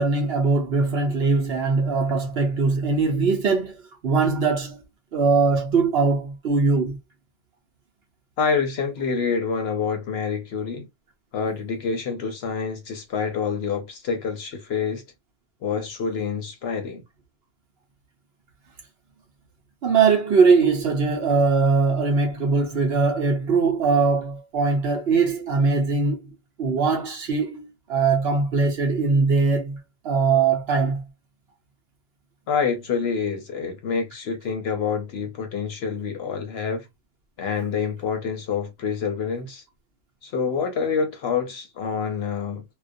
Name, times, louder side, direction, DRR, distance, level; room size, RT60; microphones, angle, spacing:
voice 1, 0.0-4.8 5.1-7.0 19.8-29.8 30.0-31.0, right 4 dB, 60° right, 0.8 m, -21 dB
voice 2, 8.4-10.9 11.3-15.0 15.6-17.0 32.5-36.9 37.4-39.6 40.2-42.6, left 5 dB, 65° left, 0.7 m, -27 dB
2.3 x 2.1 x 2.5 m
omnidirectional pair, 1.3 m